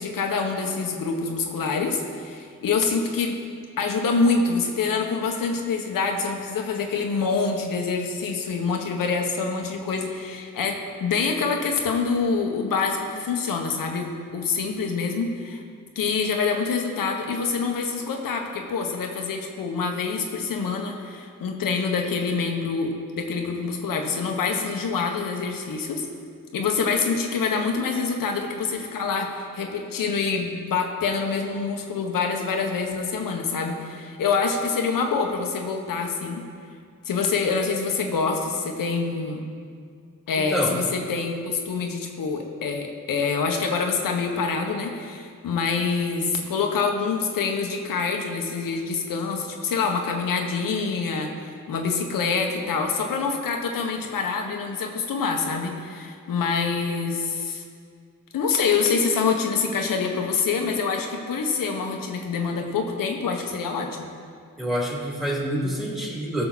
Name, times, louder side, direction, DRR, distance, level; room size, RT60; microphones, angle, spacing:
voice 1, 0.0-3.3 3.8-15.6 15.9-26.1 26.5-36.4 37.0-39.5 40.3-51.3 51.7-57.6 58.3-64.1, left 5 dB, 80° left, 3 dB, 1.5 m, -26 dB
voice 2, 40.4-40.8 64.6-66.5, equal, ahead, -3 dB, 2.9 m, -27 dB
16.5 x 6.7 x 4.2 m, 2.2 s
cardioid pair, 75°, 33 cm